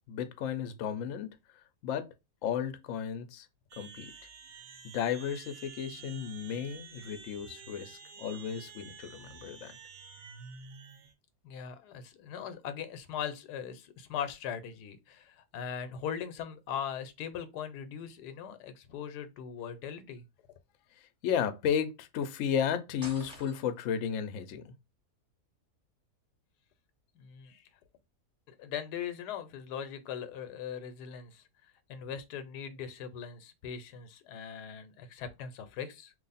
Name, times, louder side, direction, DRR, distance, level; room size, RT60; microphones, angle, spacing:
voice 1, 0.1-1.3 1.8-2.1 2.4-3.5 3.8-4.1 4.8-9.7 21.0-24.7, left 8 dB, 65° left, 0.8 m, -33 dB
sound 1, 3.7-11.1, right 6 dB, 60° right, 0.6 m, -50 dB
voice 2, 11.4-20.2 27.1-27.7 28.6-31.4 31.9-36.1, left 8 dB, 90° left, 1.2 m, -40 dB
sound 2, 23.0-24.0, equal, 5° right, 0.8 m, -47 dB
3.0 x 2.4 x 4.0 m
omnidirectional pair, 1.7 m